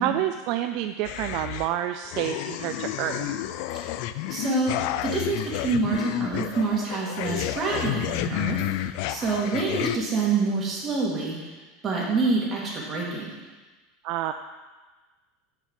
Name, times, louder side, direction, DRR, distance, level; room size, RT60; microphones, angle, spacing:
voice 1, 0.0-3.5 4.3-4.4 14.0-14.3, right 12 dB, 55° right, 8 dB, 0.4 m, -29 dB
sound 1, 1.0-1.8 2.1-10.0, left 13 dB, 60° left, 0.4 m, -30 dB
voice 2, 4.3-11.4 11.8-13.3, right 4 dB, 25° right, -4 dB, 2.6 m, -27 dB
6.5 x 6.3 x 7.4 m, 1.3 s
supercardioid pair, 145°, 0 cm